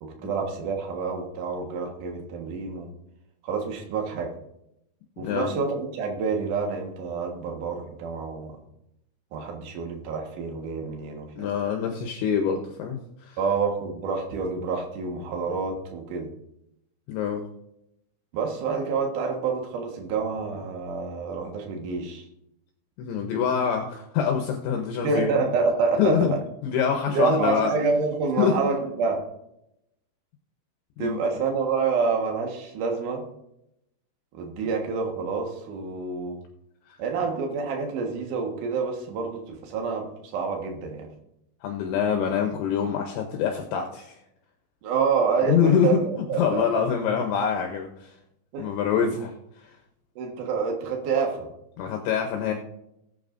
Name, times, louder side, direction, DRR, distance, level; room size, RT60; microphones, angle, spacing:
voice 1, 0.0-2.9 3.4-4.3 5.2-8.6 9.3-11.5 13.4-16.3 18.3-22.2 25.0-26.4 27.1-29.2 31.0-33.2 34.3-36.4 37.0-41.1 44.8-46.9 48.5-48.7 50.2-51.5, right 5 dB, 70° right, 2 dB, 1.9 m, -28 dB
voice 2, 11.4-13.4 17.1-17.4 23.0-25.5 26.0-26.3 26.6-27.7 28.4-28.6 31.0-31.2 34.6-34.7 36.9-37.0 41.6-44.2 45.5-48.1 48.6-49.8 51.8-52.5, left 7 dB, 75° left, 3 dB, 2.9 m, -25 dB
19.0 x 8.3 x 2.6 m, 0.82 s
omnidirectional pair, 5.9 m